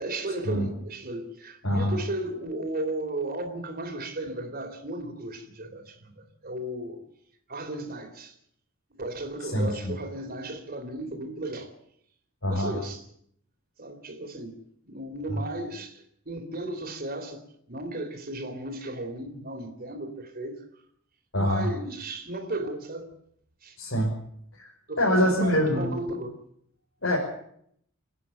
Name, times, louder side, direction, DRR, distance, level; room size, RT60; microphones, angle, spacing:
voice 1, 0.0-7.0 7.5-8.4 8.9-11.7 12.4-13.1 13.8-20.6 21.4-23.1 23.6-23.8 24.9-26.4, right 1 dB, 45° right, 3.7 m, -35 dB
voice 2, 1.6-1.9 9.5-9.9 12.4-12.7 15.3-15.4 21.3-21.7 23.8-24.1 24.6-24.7 25.0-26.0 27.0-27.2, equal, 70° left, 5.5 m, -24 dB
29.0 x 10.0 x 9.1 m
head